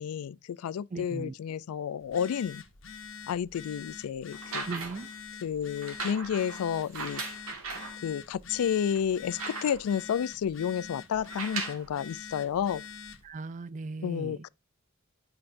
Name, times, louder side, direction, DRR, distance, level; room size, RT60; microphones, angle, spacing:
voice 1, 0.0-2.6 3.3-4.6 5.4-7.4 8.0-12.8 14.0-14.5, left 8 dB, 90° left, 0.3 m, -31 dB
voice 2, 0.9-1.3 4.7-5.1 13.2-14.4, right 3 dB, 35° right, 0.3 m, -38 dB
Telephone, 2.0-13.3, left 6 dB, 60° left, 0.9 m, -46 dB
sound 1, 4.3-5.1 5.8-8.0 8.5-8.6 8.9-10.0 11.2-11.9 12.8-12.9, right 4 dB, 85° right, 1.9 m, -38 dB
9.7 x 5.6 x 2.5 m
head